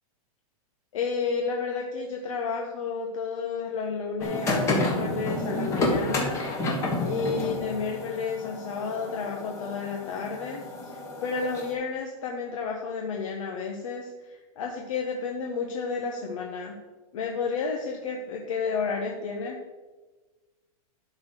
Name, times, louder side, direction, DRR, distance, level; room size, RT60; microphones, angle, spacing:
voice 1, 0.9-6.4 7.0-16.8 17.1-19.6, left 5 dB, 60° left, 1 dB, 1.3 m, -31 dB
sound 1, 4.2-11.7, left 2 dB, 15° left, 1.5 m, -30 dB
11.0 x 4.4 x 6.6 m, 1.3 s
supercardioid pair, 170°, 19 cm